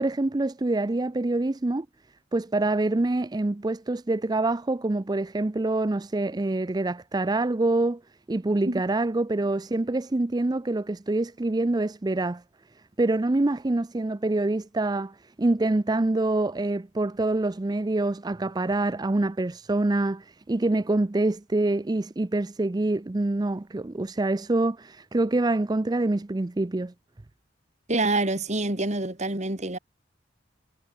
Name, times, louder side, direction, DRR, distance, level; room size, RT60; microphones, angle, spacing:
voice 1, 0.0-1.9 2.3-8.0 8.3-12.4 13.0-26.9, right 2 dB, 20° right, 0.5 m, -26 dB
voice 2, 27.9-29.8, right 2 dB, 40° right, 2.9 m, -26 dB
head